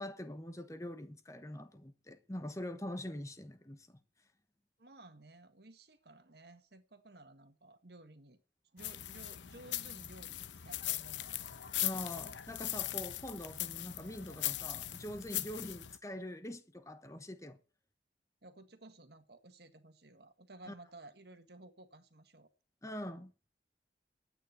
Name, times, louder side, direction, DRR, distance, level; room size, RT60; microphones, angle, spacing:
voice 1, 0.0-4.0 11.8-17.6 20.7-20.8 22.8-23.3, left 1 dB, 15° left, 1.1 m, -44 dB
voice 2, 4.8-8.4 8.7-11.6 18.4-22.5, right 2 dB, 60° right, 1.7 m, -56 dB
sound 1, 8.8-16.0, left 13 dB, 85° left, 0.9 m, -39 dB
11.5 x 9.2 x 8.2 m
head